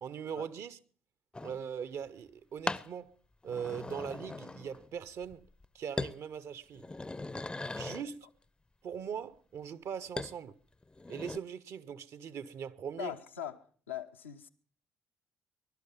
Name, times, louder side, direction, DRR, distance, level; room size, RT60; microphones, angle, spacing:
voice 1, 0.0-0.8 1.4-3.1 3.4-5.4 5.7-6.9 7.7-8.3 8.8-10.5 11.1-13.1, right 7 dB, 50° right, 0.8 m, -40 dB
sound 1, 1.3-1.6 2.7-2.9 3.4-4.9 5.2-5.7 6.0-6.2 6.6-8.1 10.2-10.4 10.8-11.4, left 2 dB, 15° left, 0.6 m, -39 dB
voice 2, 13.0-14.5, left 9 dB, 80° left, 0.9 m, -42 dB
20.5 x 12.0 x 5.5 m
figure-of-eight pair, 45°, 6 cm